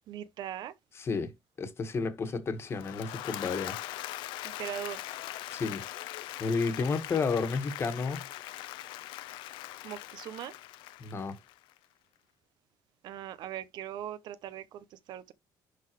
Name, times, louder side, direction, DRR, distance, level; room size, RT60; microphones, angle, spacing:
voice 1, 0.1-0.7 4.4-5.0 9.8-10.5 13.0-15.3, right 11 dB, 65° right, 0.7 m, -40 dB
voice 2, 0.9-1.3 1.6-3.8 5.5-5.8 6.4-8.2 11.0-11.4, left 4 dB, 30° left, 1.5 m, -31 dB
Applause / Crowd, 2.6-11.8, left 15 dB, 85° left, 0.7 m, -41 dB
11.0 x 3.9 x 3.1 m
cardioid pair, 140°, 8 cm